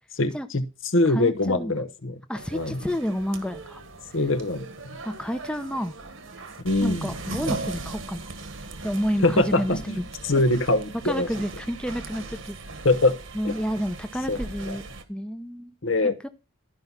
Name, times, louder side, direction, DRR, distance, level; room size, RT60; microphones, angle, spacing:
voice 1, 0.2-0.6 0.9-2.2 2.5-2.8 4.1-5.0 6.6-7.1 9.2-10.0 10.2-11.3 12.8-13.2 13.4-13.6 14.3-14.4 14.6-14.8 15.8-16.2, left 2 dB, 65° left, 11 dB, 1.0 m, -23 dB
voice 2, 1.0-1.7 2.3-3.8 5.0-5.9 6.8-8.2 8.8-10.0 10.3-10.4 11.0-12.6 13.3-14.8 15.1-15.7 16.2-16.3, equal, 5° left, 8 dB, 0.7 m, -30 dB
sound 1, 2.3-15.0, right 2 dB, 65° right, 1.5 m, -38 dB
12.5 x 5.5 x 6.0 m, 0.29 s
head